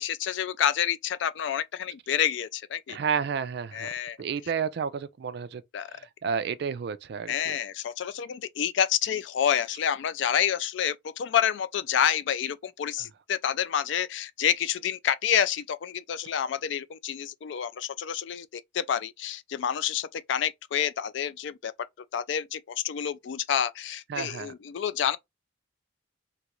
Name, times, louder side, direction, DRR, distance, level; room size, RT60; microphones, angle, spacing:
voice 1, 0.0-3.0 3.7-4.2 5.7-5.9 7.3-21.7 22.1-25.2, left 9 dB, 65° left, 0.3 m, -28 dB
voice 2, 2.9-3.9 4.2-5.6 5.9-7.6 24.1-24.5, right 6 dB, 55° right, 0.3 m, -31 dB
2.9 x 2.4 x 2.9 m
head